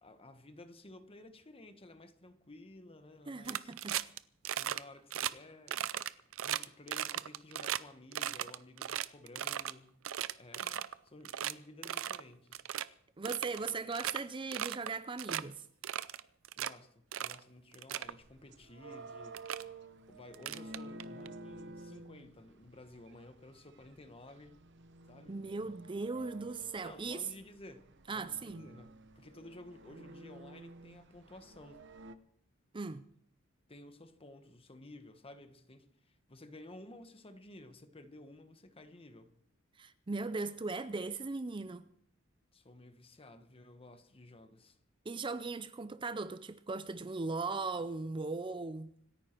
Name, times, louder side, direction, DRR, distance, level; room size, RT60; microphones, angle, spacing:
voice 1, 0.0-3.7 4.5-5.9 6.4-10.0 10.4-12.6 16.6-19.7 20.1-24.6 25.1-25.4 26.8-31.8 33.7-39.3 42.5-44.8, left 2 dB, 30° left, 1.2 m, -54 dB
voice 2, 3.3-4.0 13.2-15.6 25.3-27.2 28.1-28.7 32.7-33.0 39.8-41.9 45.1-48.9, right 3 dB, 25° right, 0.5 m, -38 dB
sound 1, 3.4-4.2 4.4-4.8 5.1-5.3 5.7-7.8 8.1-9.7 10.0-10.9 11.2-11.5 11.8-12.2 12.5-12.8 13.2-14.2 14.5-14.9 15.2-15.4 15.8-16.7 17.1-17.4 17.7-18.1 18.9-19.0 19.3-19.6 20.3-21.3, right 11 dB, 75° right, 0.5 m, -37 dB
sound 2, 18.0-32.1, right 2 dB, 60° right, 0.9 m, -52 dB
26.0 x 10.0 x 4.5 m
head